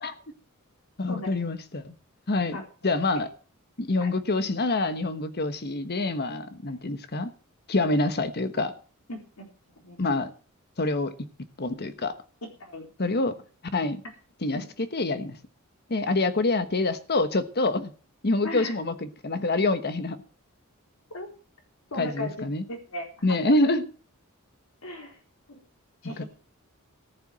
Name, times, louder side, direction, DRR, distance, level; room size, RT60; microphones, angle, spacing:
voice 1, 1.0-1.9 2.3-2.6 2.8-3.3 3.8-7.3 7.7-8.7 10.0-10.3 10.8-11.1 11.6-12.1 13.0-13.4 13.7-14.0 14.4-15.4 15.9-17.9 18.2-20.2 22.0-22.6 23.2-23.9 26.2-26.3, left 2 dB, 50° left, 11 dB, 1.2 m, -26 dB
voice 2, 9.1-9.5 9.8-10.0 12.6-12.9 14.5-14.6 18.4-18.8 21.1-21.3 21.9-23.1 23.4-23.5 24.8-25.2 25.5-25.6 26.0-26.2, left 2 dB, 80° left, 3 dB, 4.0 m, -36 dB
14.5 x 7.0 x 7.4 m, 0.40 s
head